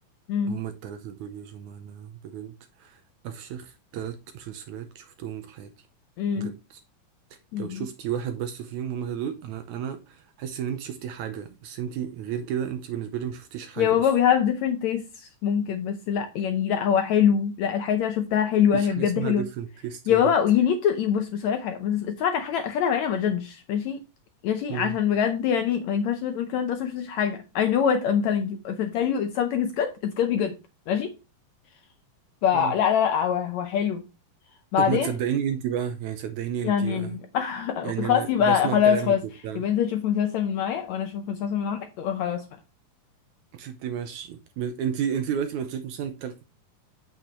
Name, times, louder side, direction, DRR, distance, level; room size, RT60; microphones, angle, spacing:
voice 1, 0.5-5.7 6.4-6.8 7.6-14.1 18.7-20.3 24.7-25.0 32.5-32.8 34.8-37.2 37.8-39.6 43.5-46.4, right 8 dB, 75° right, 1.9 m, -32 dB
voice 2, 6.2-6.5 7.5-7.8 13.8-19.4 20.1-24.0 24.4-30.6 30.9-31.1 32.4-34.0 34.7-35.1 36.6-39.2 39.5-42.4, left 8 dB, 75° left, 1.7 m, -24 dB
8.5 x 6.7 x 3.1 m
omnidirectional pair, 3.9 m